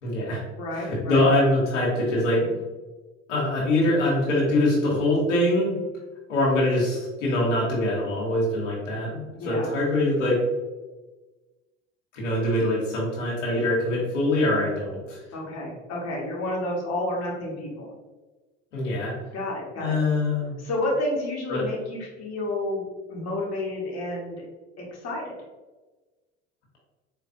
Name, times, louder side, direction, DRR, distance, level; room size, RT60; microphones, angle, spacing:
voice 1, 0.0-0.4 0.7-2.5 3.3-5.7 6.3-10.4 12.1-15.2 18.7-19.1 19.8-20.5 21.5-21.7, left 1 dB, 80° left, -5 dB, 1.2 m, -23 dB
voice 2, 0.6-1.2 9.3-9.7 15.3-17.9 19.3-20.0 20.6-24.4 24.8-25.3, left 1 dB, 45° left, -3 dB, 1.3 m, -30 dB
4.3 x 2.5 x 2.7 m, 1.2 s
hypercardioid pair, 70°, 36 cm